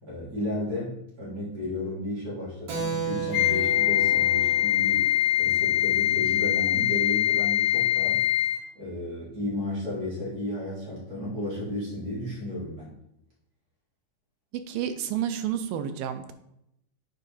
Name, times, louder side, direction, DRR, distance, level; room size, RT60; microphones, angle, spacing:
voice 1, 0.0-5.1 5.4-8.2 8.7-13.0, left 1 dB, 25° right, -7 dB, 3.4 m, -33 dB
Keyboard (musical), 2.7-6.8, right 6 dB, 60° right, 2.0 m, -35 dB
Wind instrument woodwind instrument, 3.3-8.7, left 13 dB, 75° left, 2.9 m, -23 dB
voice 2, 14.7-16.3, right 9 dB, 90° right, 9 dB, 2.4 m, -30 dB
8.1 x 4.9 x 4.2 m, 0.78 s
omnidirectional pair, 4.0 m